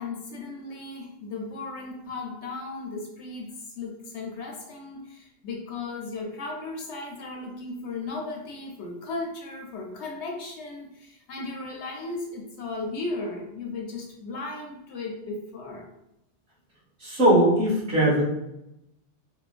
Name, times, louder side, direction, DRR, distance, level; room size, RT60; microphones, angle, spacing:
voice 1, 0.0-15.8, left 3 dB, 70° left, 0 dB, 0.8 m, -36 dB
voice 2, 17.0-18.2, right 1 dB, 50° right, -7 dB, 1.1 m, -20 dB
3.1 x 2.0 x 2.4 m, 0.85 s
omnidirectional pair, 1.2 m